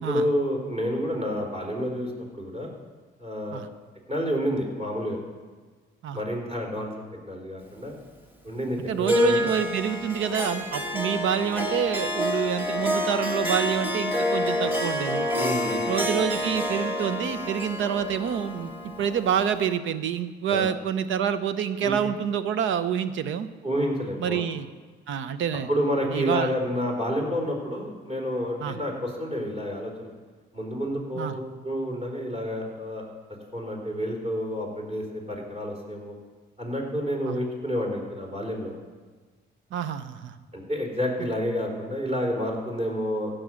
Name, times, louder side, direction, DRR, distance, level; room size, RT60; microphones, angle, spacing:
voice 1, 0.1-2.7 3.2-3.6 4.1-5.2 6.1-7.9 8.4-9.5 15.4-15.8 20.5-20.7 21.8-21.9 23.6-24.4 25.7-30.1 30.5-33.0 33.5-36.1 36.6-38.7 40.5-43.3, equal, 35° right, 0 dB, 3.9 m, -29 dB
voice 2, 8.9-15.3 15.9-23.5 24.2-24.7 25.1-25.7 26.1-26.5 28.6-28.8 31.2-31.3 37.3-37.4 39.7-40.3, right 8 dB, 80° right, 12 dB, 0.7 m, -27 dB
Harp, 9.1-19.6, left 1 dB, 10° right, 2.0 m, -28 dB
15.5 x 6.3 x 6.3 m, 1.4 s
cardioid pair, 90°, 20 cm